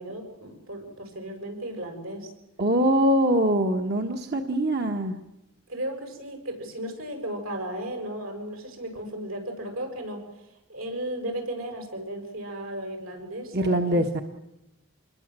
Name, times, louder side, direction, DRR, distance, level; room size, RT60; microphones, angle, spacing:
voice 1, 0.0-2.3 5.7-14.0, right 1 dB, 80° right, 4 dB, 6.7 m, -35 dB
voice 2, 2.6-5.1 13.5-14.2, right 1 dB, 50° right, 4 dB, 1.4 m, -23 dB
27.5 x 21.5 x 7.6 m, 0.94 s
head